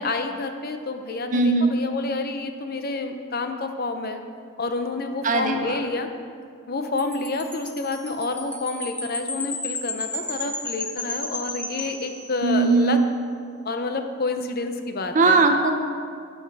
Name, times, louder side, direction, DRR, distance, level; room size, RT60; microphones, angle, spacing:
voice 1, 0.0-4.2 4.6-6.1 6.7-13.0 13.6-15.4, left 3 dB, 45° left, 6 dB, 0.7 m, -29 dB
voice 2, 1.3-1.8 5.2-5.7 12.4-13.0 15.1-15.7, right 3 dB, 35° right, 4 dB, 0.7 m, -19 dB
Wind chime, 7.0-12.7, left 2 dB, 5° left, 0.7 m, -33 dB
10.5 x 8.0 x 4.8 m, 2.2 s
head